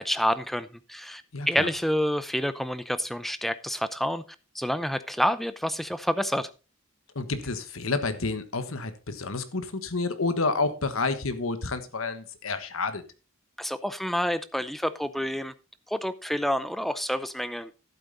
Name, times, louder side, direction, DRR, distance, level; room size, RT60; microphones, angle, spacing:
voice 1, 0.0-1.2 1.5-4.2 4.5-6.5 13.6-15.5 15.9-17.7, equal, ahead, 0.6 m, -28 dB
voice 2, 1.3-1.7 7.1-13.0, left 3 dB, 80° left, 1.3 m, -29 dB
11.5 x 8.6 x 4.0 m
head